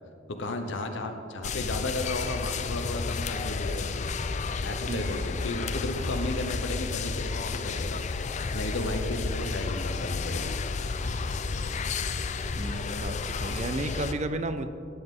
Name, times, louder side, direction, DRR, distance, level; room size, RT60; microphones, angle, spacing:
voice 1, 0.3-4.0 4.6-10.6, left 2 dB, 70° left, 5 dB, 0.8 m, -34 dB
sound 1, 1.4-14.1, left 4 dB, 35° left, 0.4 m, -31 dB
voice 2, 4.9-5.2 12.6-14.7, right 2 dB, 35° right, 10 dB, 0.4 m, -33 dB
18.0 x 7.9 x 3.7 m, 2.5 s
head